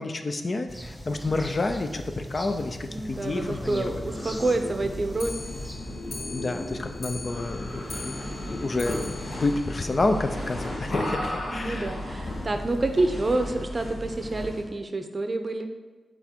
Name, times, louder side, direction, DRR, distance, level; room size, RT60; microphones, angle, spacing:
voice 1, 0.0-4.0 6.3-11.9 12.4-12.5, left 2 dB, 45° left, 6 dB, 0.5 m, -29 dB
sound 1, 0.7-5.7, equal, 5° left, 1.1 m, -41 dB
voice 2, 2.9-5.3 11.5-15.7, right 2 dB, 45° right, 6 dB, 0.6 m, -28 dB
sound 2, 3.0-14.7, left 1 dB, 90° left, 1.8 m, -35 dB
Clock, 5.1-10.6 11.0-11.1 11.3-11.4 11.7-11.8 12.1-12.2 12.9-13.0 13.7-13.8 14.5-14.6, left 3 dB, 70° left, 1.0 m, -42 dB
6.0 x 3.5 x 4.5 m, 1.3 s
cardioid pair, 55°, 0 cm